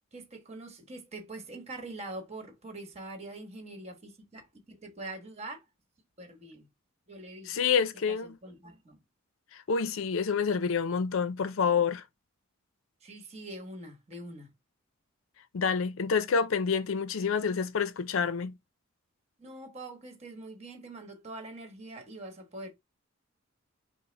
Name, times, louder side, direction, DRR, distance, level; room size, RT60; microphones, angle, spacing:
voice 1, 0.1-5.6 6.2-6.7 7.1-7.7 8.1-9.0 13.0-14.5 19.4-22.7, right 2 dB, 30° right, 1.3 m, -44 dB
voice 2, 7.5-8.4 9.5-12.0 15.5-18.6, left 6 dB, 75° left, 0.5 m, -28 dB
5.6 x 2.0 x 4.0 m
head